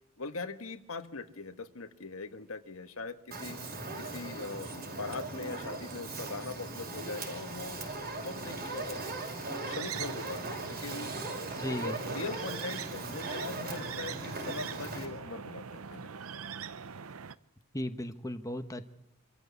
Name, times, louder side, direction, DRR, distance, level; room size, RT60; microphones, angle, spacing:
voice 1, 0.2-3.6 4.0-7.8 8.2-9.0 9.5-11.1 11.8-16.1, left 3 dB, 75° left, 9 dB, 1.5 m, -41 dB
Fire, 3.3-15.1, right 2 dB, 50° right, 5.3 m, -39 dB
sound 1, 9.7-17.3, right 7 dB, 80° right, 0.8 m, -43 dB
voice 2, 11.6-12.0 17.7-18.9, left 1 dB, 15° left, 7 dB, 1.2 m, -36 dB
27.0 x 14.5 x 8.3 m, 0.83 s
head